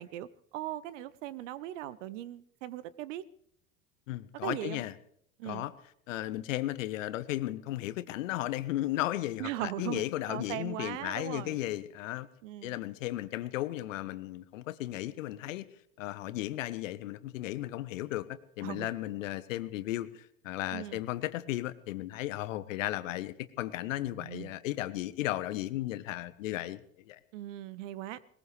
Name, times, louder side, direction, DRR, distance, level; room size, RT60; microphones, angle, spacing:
voice 1, 0.0-3.3 4.4-4.8 5.4-5.6 9.4-11.6 12.4-12.8 18.6-18.9 20.7-21.0 24.1-24.5 27.3-28.2, right 14 dB, 60° right, 19 dB, 0.9 m, -39 dB
voice 2, 4.1-4.9 5.4-5.7 6.1-12.3 12.6-15.6 16.0-27.2, left 15 dB, 65° left, 14 dB, 1.1 m, -35 dB
21.0 x 20.5 x 3.3 m, 0.68 s
figure-of-eight pair, 75°, 42 cm